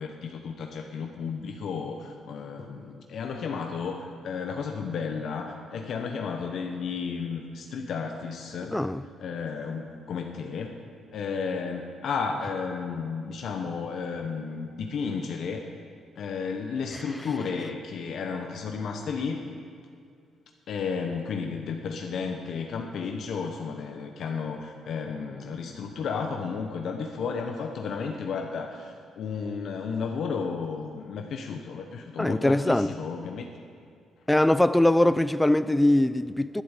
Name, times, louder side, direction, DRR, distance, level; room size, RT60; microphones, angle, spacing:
voice 1, 0.0-8.8 9.2-10.8 11.1-15.6 16.2-19.4 20.7-33.5, left 5 dB, 65° left, 1.0 m, -33 dB
voice 2, 8.7-9.0 16.9-17.0 32.2-32.9 34.3-36.6, left 1 dB, 10° left, 0.4 m, -22 dB
11.5 x 8.8 x 8.2 m
cardioid pair, 90°, 0 cm